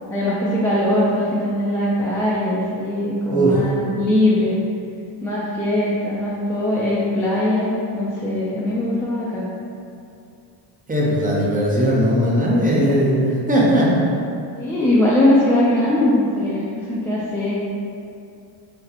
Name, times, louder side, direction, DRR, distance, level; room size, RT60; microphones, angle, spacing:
voice 1, 0.1-4.6 5.2-9.5 14.6-17.5, left 1 dB, 5° left, -8 dB, 0.6 m, -20 dB
voice 2, 3.3-3.6 10.9-13.9, equal, 15° right, -5 dB, 0.9 m, -18 dB
6.3 x 2.2 x 2.9 m, 2.5 s
cardioid pair, 95°, 48 cm